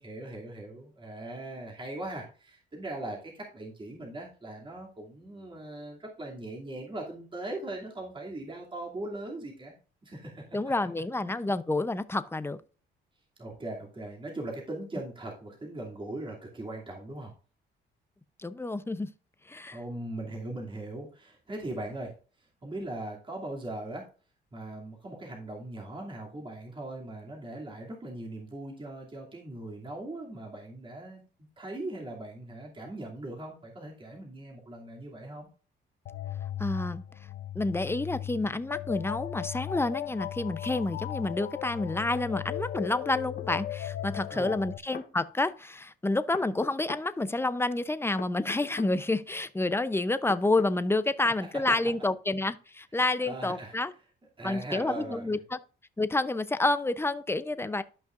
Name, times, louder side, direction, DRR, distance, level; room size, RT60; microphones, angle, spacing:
voice 1, 0.0-10.6 13.4-17.3 19.7-24.1 24.5-31.2 31.6-35.5 44.3-44.6 51.2-51.6 53.2-53.8 54.4-55.3, right 1 dB, 25° right, 2.7 m, -40 dB
voice 2, 10.5-12.6 18.4-19.1 19.5-19.8 36.6-37.0 37.5-53.9 54.4-55.6 56.0-57.8, left 2 dB, 10° left, 0.6 m, -29 dB
sound 1, 36.1-44.8, left 12 dB, 65° left, 0.6 m, -37 dB
sound 2, 43.4-43.5 44.7-45.1 46.3-47.1 48.2-48.9 50.3-50.8 51.7-51.8, left 7 dB, 45° left, 1.0 m, -42 dB
12.5 x 5.7 x 2.5 m
cardioid pair, 90°, 20 cm